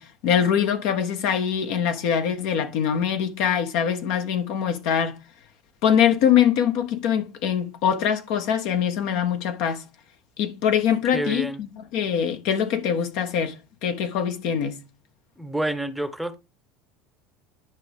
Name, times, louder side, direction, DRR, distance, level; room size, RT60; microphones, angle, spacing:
voice 1, 0.0-5.2 5.8-9.8 10.4-14.8, left 8 dB, 70° left, 1.2 m, -23 dB
voice 2, 11.1-11.6 15.4-16.4, right 1 dB, ahead, 0.8 m, -28 dB
10.5 x 5.1 x 3.5 m
hypercardioid pair, 90°, 0 cm